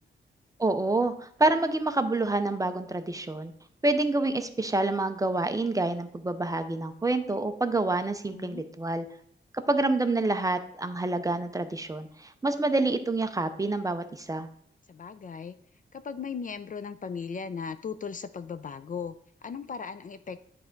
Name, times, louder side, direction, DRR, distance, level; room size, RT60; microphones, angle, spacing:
voice 1, 0.6-3.5 3.8-9.1 9.5-14.5, right 2 dB, 15° right, 9 dB, 0.5 m, -27 dB
voice 2, 8.3-8.6 14.9-15.6 15.9-19.1 19.4-20.4, left 6 dB, 40° left, 12 dB, 0.4 m, -37 dB
9.6 x 3.4 x 5.1 m, 0.68 s
wide cardioid pair, 165°, 20 cm